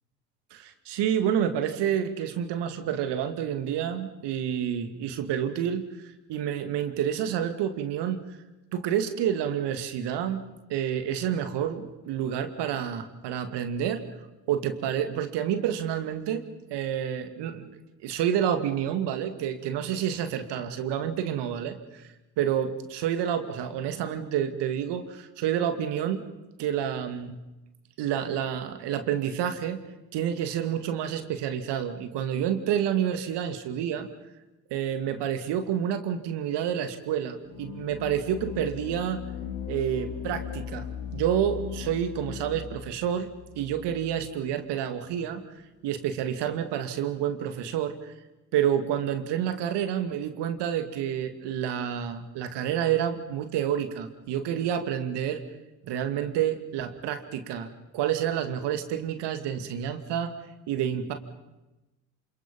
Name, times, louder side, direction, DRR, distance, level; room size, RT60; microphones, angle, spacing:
voice 1, 0.5-8.4 8.7-10.4 10.7-14.0 14.5-16.4 16.7-17.7 18.0-22.1 22.4-26.2 26.6-27.4 28.0-29.8 30.1-34.1 34.7-39.2 39.7-43.3 43.6-45.4 45.8-48.1 48.5-55.4 55.8-60.3 60.7-61.1, right 9 dB, 65° right, 8 dB, 2.5 m, -29 dB
sound 1, 37.5-44.6, left 9 dB, 75° left, 2.3 m, -38 dB
27.5 x 27.0 x 5.5 m, 1.0 s
hypercardioid pair, 55°, 45 cm